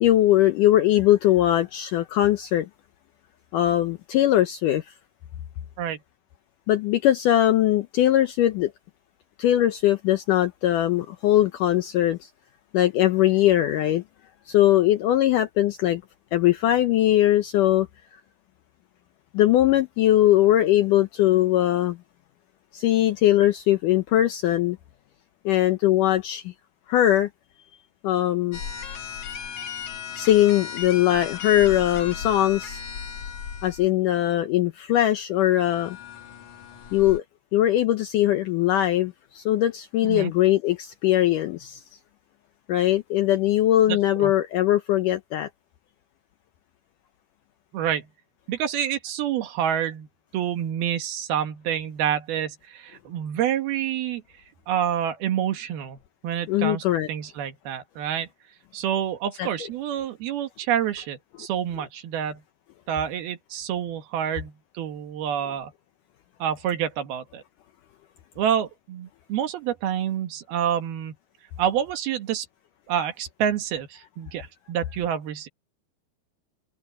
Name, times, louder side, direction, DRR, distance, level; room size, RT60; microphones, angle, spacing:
voice 1, 0.0-2.7 3.5-4.9 6.7-8.7 9.4-12.3 12.7-14.0 14.5-16.0 16.3-17.9 19.3-22.0 22.7-24.8 25.5-26.5 26.9-27.3 28.0-28.6 30.1-32.8 33.6-36.0 36.9-37.2 37.5-41.8 42.7-45.5 56.5-57.1 59.4-59.5, left 13 dB, 80° left, 1.9 m, -21 dB
sound 1, 28.5-33.9 35.4-37.2, left 7 dB, 50° left, 3.5 m, -36 dB
voice 2, 43.9-44.3 47.7-48.1 48.5-50.1 50.3-54.2 54.7-56.0 56.2-58.3 58.7-62.4 62.9-65.7 66.4-67.4 68.4-71.1 71.6-72.5 72.9-75.5, right 9 dB, 75° right, 3.5 m, -28 dB
open air
omnidirectional pair, 4.6 m